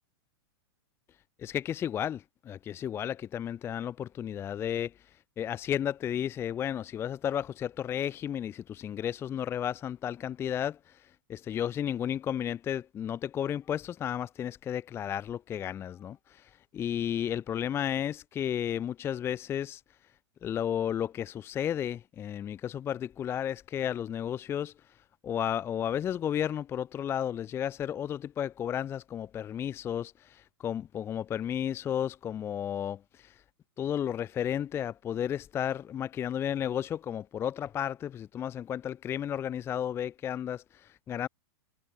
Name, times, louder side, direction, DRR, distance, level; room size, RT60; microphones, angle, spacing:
voice 1, 1.4-19.8 20.4-24.7 25.2-33.4 33.8-41.3, left 9 dB, 15° left, 0.5 m, -33 dB
hypercardioid pair, 145°, 14 cm